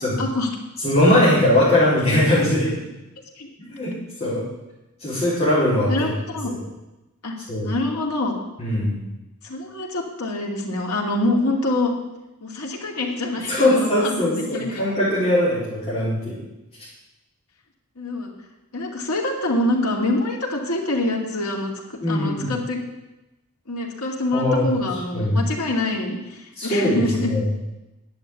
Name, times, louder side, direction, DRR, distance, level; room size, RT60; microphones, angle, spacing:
voice 1, 0.2-0.5 3.4-3.5 5.9-6.5 7.2-7.3 7.6-8.3 9.4-11.9 12.4-14.8 18.0-18.3 18.7-21.7 22.1-22.8 23.7-27.3, left 2 dB, 85° left, 0 dB, 2.7 m, -25 dB
voice 2, 0.8-2.7 3.7-3.9 4.2-4.4 5.0-6.1 6.4-6.6 7.5-7.7 8.6-9.0 13.5-16.4 22.0-22.5 24.3-24.7 25.1-25.4 26.5-27.5, left 1 dB, 30° left, -10 dB, 4.9 m, -20 dB
10.5 x 7.9 x 9.5 m, 0.99 s
head